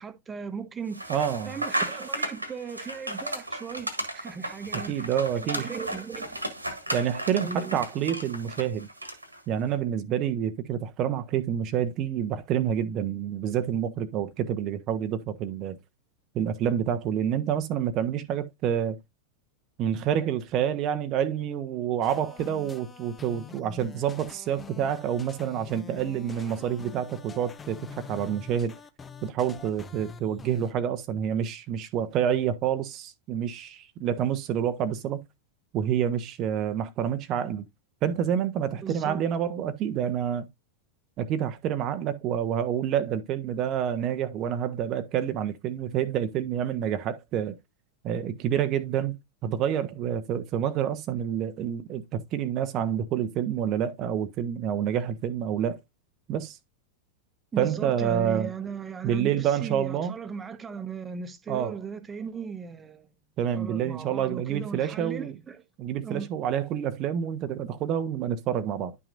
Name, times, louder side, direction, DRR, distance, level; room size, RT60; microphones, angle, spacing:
voice 1, 0.0-1.2 1.5-5.1 5.4-6.4 7.4-7.8 38.8-39.2 57.5-63.1 63.6-65.6 66.0-66.3, right 6 dB, 15° right, 1.1 m, -37 dB
sound 1, 0.9-9.4, right 1 dB, 85° right, 1.7 m, -34 dB
voice 2, 1.1-1.5 4.9-5.7 6.9-8.9 9.5-15.8 16.3-19.0 19.8-27.8 28.1-28.7 29.2-35.2 35.7-37.6 38.0-40.4 41.2-47.5 48.0-49.2 49.4-55.8 56.3-56.6 57.6-58.5 59.0-60.1 61.5-61.8 63.4-65.3 65.8-68.9, right 9 dB, 35° right, 0.8 m, -28 dB
sound 2, 22.0-30.7, left 6 dB, 20° left, 0.7 m, -45 dB
11.0 x 5.9 x 2.5 m
figure-of-eight pair, 90°, 0 cm